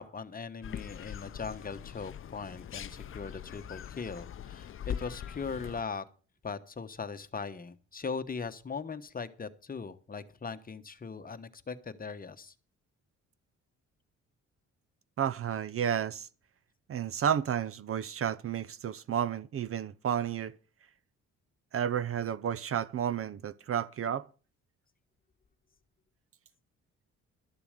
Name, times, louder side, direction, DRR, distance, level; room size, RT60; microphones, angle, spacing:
voice 1, 0.0-6.0 6.4-12.5, left 5 dB, 30° left, 1.1 m, -39 dB
sound 1, 0.6-5.8, left 9 dB, 45° left, 0.6 m, -42 dB
voice 2, 15.2-16.3 16.9-20.5 21.7-24.3, right 9 dB, 45° right, 0.6 m, -31 dB
12.5 x 6.9 x 6.6 m
cardioid pair, 90°, 30 cm